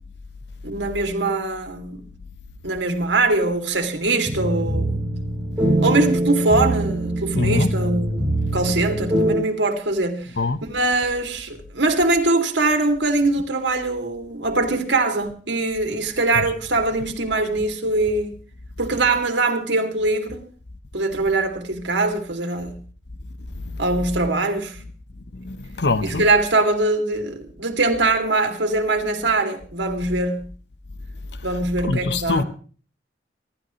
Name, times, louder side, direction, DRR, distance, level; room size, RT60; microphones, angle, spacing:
voice 1, 0.6-2.1 2.6-5.0 5.8-8.3 8.5-10.4 10.6-18.3 18.8-20.4 20.9-22.7 23.8-24.8 26.0-30.5 31.4-32.4, right 2 dB, 80° right, 2.6 m, -22 dB
sound 1, 4.2-9.3, right 1 dB, 5° right, 6.4 m, -23 dB
voice 2, 7.3-7.7 10.4-10.6 25.5-26.2 31.9-32.4, left 3 dB, 70° left, 1.0 m, -22 dB
26.5 x 12.0 x 3.1 m
head